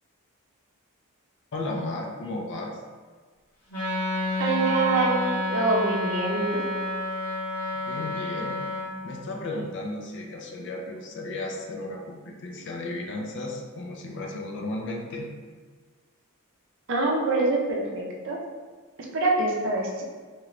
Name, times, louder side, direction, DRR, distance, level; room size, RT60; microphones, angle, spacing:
voice 1, 1.5-2.8 7.7-8.6 9.0-15.3, left 2 dB, 55° left, 1 dB, 0.5 m, -34 dB
Wind instrument woodwind instrument, 3.7-8.9, left 1 dB, 75° left, 1.1 m, -29 dB
voice 2, 4.4-6.6 16.9-18.4 19.1-20.0, right 2 dB, 60° right, -1 dB, 0.6 m, -25 dB
3.0 x 3.0 x 2.5 m, 1.5 s
head